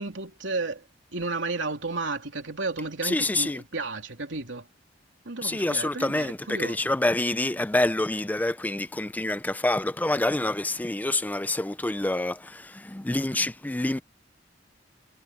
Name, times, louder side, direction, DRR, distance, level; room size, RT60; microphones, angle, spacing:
voice 1, 0.0-4.7 5.2-6.9, right 3 dB, 80° right, 3.2 m, -33 dB
voice 2, 3.1-3.5 5.4-6.4 6.9-12.4 12.9-14.0, left 2 dB, 10° left, 0.4 m, -26 dB
head